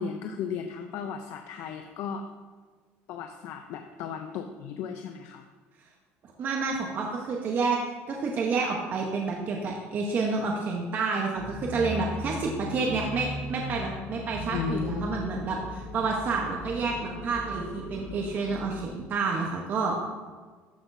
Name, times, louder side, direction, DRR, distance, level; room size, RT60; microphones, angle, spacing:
voice 1, 0.0-2.2 3.1-5.5 14.5-15.5, left 7 dB, 70° left, 5 dB, 0.5 m, -35 dB
voice 2, 6.4-7.8 8.1-19.9, right 4 dB, 45° right, 0 dB, 1.0 m, -29 dB
sound 1, 11.3-19.0, left 1 dB, 25° left, 2.6 m, -38 dB
13.0 x 6.0 x 2.7 m, 1.4 s
cardioid pair, 125°, 5 cm